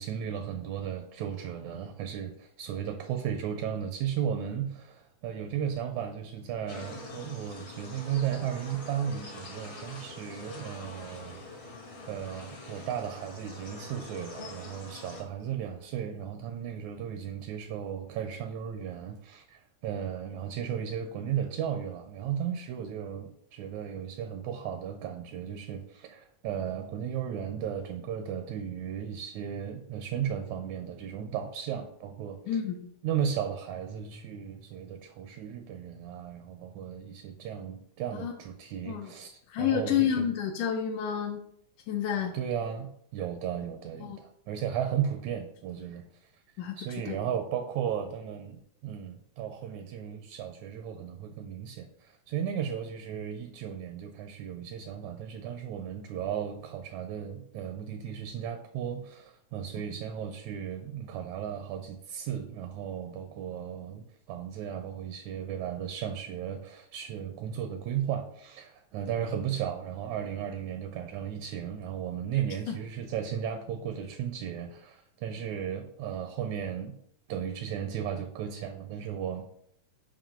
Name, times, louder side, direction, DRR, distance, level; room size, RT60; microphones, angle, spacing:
voice 1, 0.0-11.4 12.1-32.6 33.0-40.3 42.3-46.3 46.8-77.0 77.3-79.5, right 9 dB, 80° right, 7 dB, 1.7 m, -35 dB
sound 1, 6.7-15.2, left 2 dB, 55° left, 0.7 m, -44 dB
voice 2, 39.5-41.4 41.9-42.3 44.0-44.2 46.6-46.8 47.1-47.2 72.7-72.8, left 8 dB, 80° left, 3 dB, 2.0 m, -29 dB
7.4 x 2.6 x 5.6 m, 0.72 s
omnidirectional pair, 3.6 m